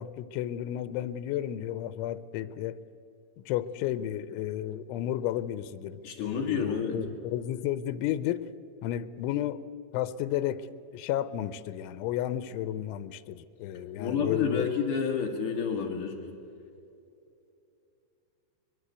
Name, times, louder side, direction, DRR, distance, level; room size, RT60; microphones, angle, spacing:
voice 1, 0.0-2.8 3.5-8.5 8.8-9.6 9.9-10.7 10.9-14.7, left 12 dB, 90° left, 15 dB, 3.1 m, -32 dB
voice 2, 6.0-7.0 14.0-16.2, left 6 dB, 50° left, 2 dB, 3.4 m, -29 dB
22.5 x 21.5 x 8.1 m, 2.6 s
omnidirectional pair, 5.3 m